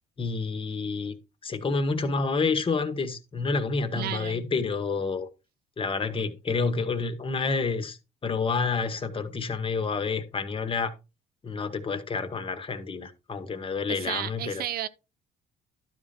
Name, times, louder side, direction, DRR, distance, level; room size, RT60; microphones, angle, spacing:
voice 1, 0.2-1.2 1.4-5.3 5.8-10.9 11.4-14.6, left 4 dB, 30° left, 1.8 m, -29 dB
voice 2, 3.9-4.4 13.9-14.9, right 11 dB, 65° right, 0.8 m, -33 dB
12.0 x 5.2 x 4.4 m
cardioid pair, 110°, 17 cm